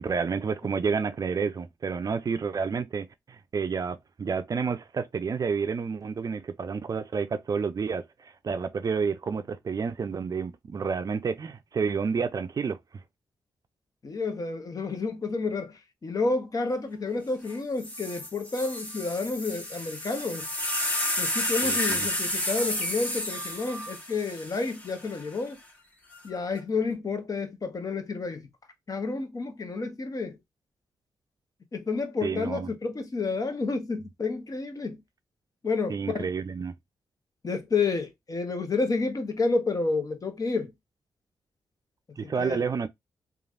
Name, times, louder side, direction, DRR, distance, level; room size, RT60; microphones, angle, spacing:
voice 1, 0.0-12.8 21.6-22.1 32.2-32.7 35.9-36.7 42.2-42.9, right 5 dB, 45° right, 0.4 m, -30 dB
voice 2, 14.0-20.5 21.2-25.6 26.2-28.5 28.9-30.4 31.7-35.0 35.6-36.2 37.4-40.7 42.2-42.7, left 3 dB, 45° left, 0.9 m, -30 dB
sound 1, 17.5-17.6 17.8-25.2 26.1-26.6, left 1 dB, 20° left, 1.3 m, -31 dB
3.1 x 2.4 x 2.4 m
supercardioid pair, 45°, 8 cm